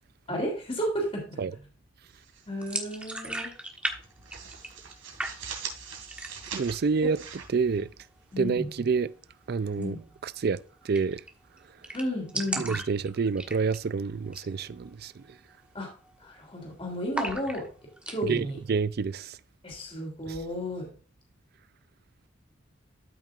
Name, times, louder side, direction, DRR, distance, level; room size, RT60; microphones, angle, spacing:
voice 1, 0.3-1.4 2.5-3.5 8.3-8.7 9.8-10.0 11.9-12.6 15.7-15.9 16.2-17.6 18.1-18.6 19.6-20.9, equal, 30° left, 3.2 m, -32 dB
sound 1, 2.1-3.0 3.3-3.5 3.9-8.3, right 6 dB, 85° right, 2.7 m, -42 dB
sound 2, 2.6-4.9 5.2-5.8 6.1-6.6 7.0-7.1 7.4-8.0 9.7-9.9 10.2-10.3 10.5-10.6 10.9-11.3 11.6-11.7 11.8-13.9 14.2-14.5 14.9-15.0 15.5-16.6 17.1-18.2, right 1 dB, 5° right, 1.3 m, -35 dB
voice 2, 6.5-7.2 7.5-7.9 8.4-9.1 9.5-11.2 12.6-15.2 18.2-19.4, right 5 dB, 50° right, 0.4 m, -28 dB
13.0 x 6.1 x 2.5 m
head